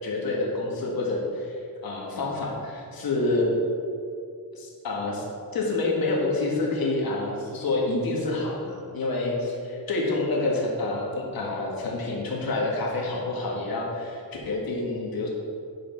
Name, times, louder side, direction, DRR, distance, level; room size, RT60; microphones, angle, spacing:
voice 1, 0.0-1.6 1.8-3.5 4.5-5.2 5.5-15.3, left 2 dB, 85° left, -2 dB, 1.7 m, -28 dB
9.4 x 5.0 x 4.6 m, 2.5 s
wide cardioid pair, 120°, 35 cm